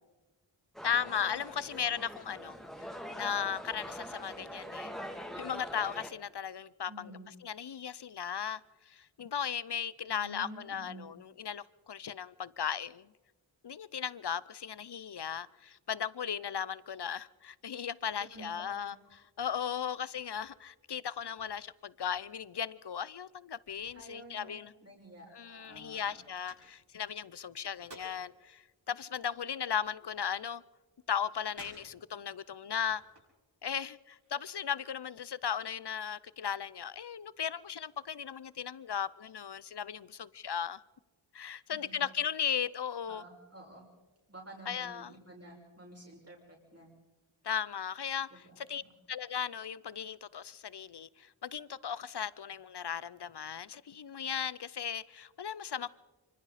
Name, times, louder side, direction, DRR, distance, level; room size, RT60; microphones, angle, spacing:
sound 1, 0.7-6.1, equal, ahead, 2.7 m, -43 dB
voice 1, 0.8-4.9 5.4-6.9 7.4-8.6 8.9-13.1 13.6-24.7 25.3-30.6 31.1-33.0 33.6-40.8 41.3-43.2 44.7-45.1 47.4-48.8 49.1-55.9, left 8 dB, 55° left, 0.7 m, -37 dB
voice 2, 6.9-7.3 10.1-11.1 18.2-18.9 23.9-26.2 41.7-42.1 43.1-43.9 44.3-46.9 48.3-48.9, right 1 dB, 30° right, 5.7 m, -50 dB
sound 2, 18.1-18.5 18.8-20.5 20.8-21.8 22.1-24.7 25.0-25.1 25.3-28.4 28.8-30.7 31.0-32.3 32.6-33.4 33.8-34.6, right 1 dB, 55° right, 7.8 m, -58 dB
25.0 x 24.5 x 4.2 m
wide cardioid pair, 40°, 48 cm